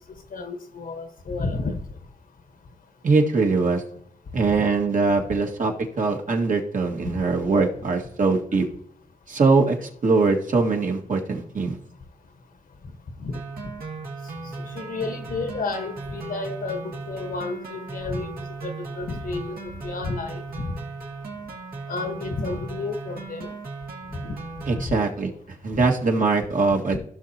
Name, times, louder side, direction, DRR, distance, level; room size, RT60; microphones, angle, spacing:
voice 1, 0.3-1.8 4.5-4.7 7.0-7.2 13.2-13.4 14.6-19.6 19.8-20.7 21.9-23.5 24.1-24.3 24.7-25.0 25.8-25.9, left 3 dB, 65° left, 7 dB, 1.3 m, -31 dB
voice 2, 3.0-3.8 4.3-8.7 9.3-11.8 24.7-25.3 25.6-27.0, right 3 dB, 60° right, 1 dB, 1.9 m, -22 dB
sound 1, 13.3-24.8, right 4 dB, 75° right, 2.3 m, -37 dB
15.5 x 5.9 x 2.9 m, 0.67 s
cardioid pair, 55°, 15 cm